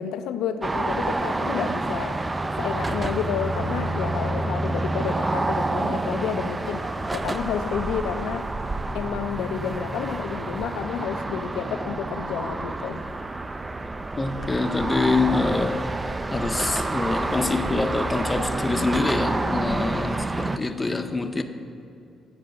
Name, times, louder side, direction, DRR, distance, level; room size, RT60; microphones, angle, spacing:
voice 1, 0.0-2.2 2.6-6.9 7.1-8.5 8.9-13.0, left 8 dB, 85° left, 9 dB, 0.5 m, -30 dB
sound 1, 0.6-20.6, right 2 dB, 20° right, 0.3 m, -28 dB
voice 2, 14.2-15.9 16.3-21.4, left 3 dB, 20° left, 7 dB, 0.6 m, -25 dB
8.9 x 4.9 x 6.6 m, 2.8 s
cardioid pair, 85°, 0 cm